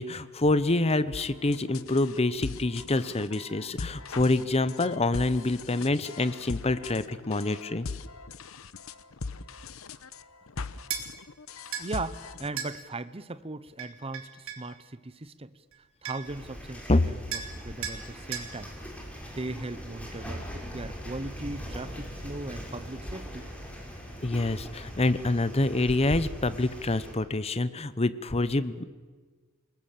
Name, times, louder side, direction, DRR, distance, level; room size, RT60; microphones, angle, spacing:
voice 1, 0.0-7.9 16.9-17.0 24.2-28.9, left 2 dB, 30° left, 14 dB, 0.9 m, -26 dB
sound 1, 1.1-12.7, left 4 dB, 80° left, 0.9 m, -40 dB
sound 2, 10.9-11.1 11.7-11.9 12.6-12.7 13.8-14.7 15.7-15.8 16.0-16.4 17.3-17.5 17.8-18.0 18.3-18.5, right 8 dB, 80° right, 3.3 m, -35 dB
voice 2, 11.8-15.5 16.0-18.7 19.2-23.5, right 2 dB, 30° right, 14 dB, 0.8 m, -38 dB
sound 3, 16.2-27.1, equal, 5° left, 5.1 m, -41 dB
28.5 x 19.5 x 7.6 m, 1.4 s
head